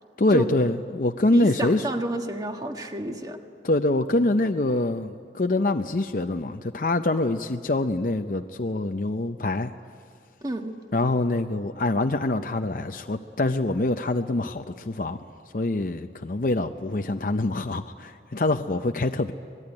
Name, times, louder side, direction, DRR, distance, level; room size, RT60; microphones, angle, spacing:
voice 1, 0.2-1.8 3.6-9.7 10.9-15.2 15.5-19.3, left 2 dB, 50° left, 6 dB, 0.6 m, -25 dB
voice 2, 1.3-3.4 10.4-10.7, right 1 dB, 20° right, 4 dB, 1.6 m, -30 dB
25.0 x 20.5 x 9.9 m, 2.2 s
head